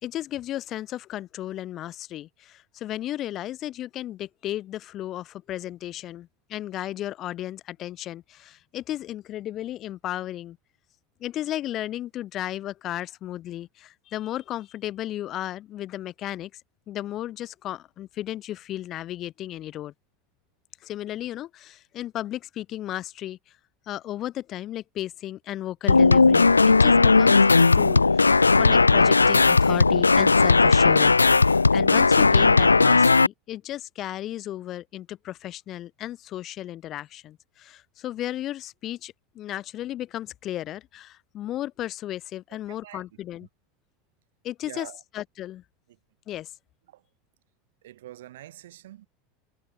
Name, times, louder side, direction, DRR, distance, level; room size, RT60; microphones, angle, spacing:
voice 1, 0.0-10.6 11.2-16.6 16.9-19.9 20.8-23.4 23.9-43.5 44.4-44.9 45.1-45.6 46.3-46.5, left 13 dB, 40° left, 3.2 m, -34 dB
sound 1, 25.9-33.3, left 4 dB, 80° left, 0.3 m, -17 dB
voice 2, 42.5-43.0 44.6-45.0 46.9-47.0 47.8-49.1, right 14 dB, 60° right, 2.6 m, -45 dB
figure-of-eight pair, 80°, 0 cm